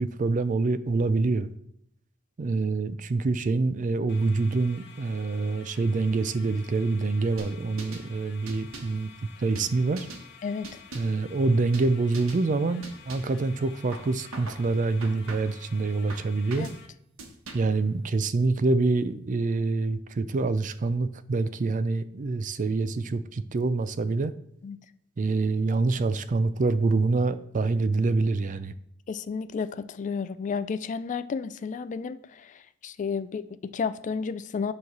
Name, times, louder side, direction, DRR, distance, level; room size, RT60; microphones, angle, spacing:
voice 1, 0.0-1.5 2.4-9.1 9.4-10.1 10.9-16.7 17.5-24.3 25.2-28.7, right 3 dB, 40° right, 13 dB, 0.4 m, -26 dB
sound 1, 4.1-16.9, left 7 dB, 55° left, 0.9 m, -51 dB
sound 2, 7.4-8.1 8.5-9.0 9.6-10.3 10.6-11.2 11.7-11.9 12.1-12.4 12.8-13.4 13.9-14.6 15.0-15.6 16.1-16.8 17.2-17.8, right 2 dB, 80° right, 1.2 m, -42 dB
voice 2, 10.4-10.8 16.6-16.8 24.6-24.8 29.1-34.7, left 5 dB, 35° left, 14 dB, 0.3 m, -32 dB
9.4 x 3.2 x 5.9 m, 0.75 s
head